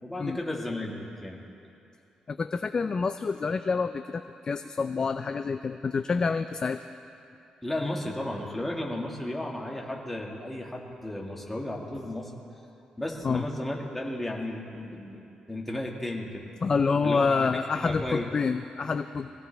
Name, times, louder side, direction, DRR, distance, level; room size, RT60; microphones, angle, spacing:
voice 1, 0.0-1.4 7.6-12.6 13.0-16.5 17.0-18.3, left 1 dB, 10° left, -2 dB, 1.9 m, -34 dB
voice 2, 2.3-6.8 13.2-13.4 16.6-19.3, left 5 dB, 35° left, 9 dB, 0.4 m, -27 dB
22.5 x 16.5 x 3.4 m, 2.7 s
cardioid pair, 135°, 2 cm